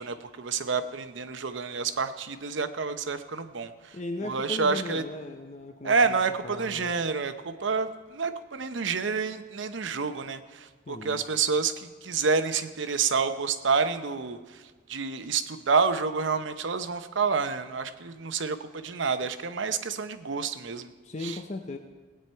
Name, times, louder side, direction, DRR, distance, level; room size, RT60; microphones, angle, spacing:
voice 1, 0.0-5.0 5.8-20.9 21.2-21.4, right 5 dB, 75° right, 10 dB, 0.8 m, -29 dB
voice 2, 3.9-6.2 6.4-6.9 10.9-11.2 21.0-21.8, left 2 dB, 40° left, 5 dB, 0.7 m, -37 dB
18.0 x 9.1 x 4.5 m, 1.4 s
head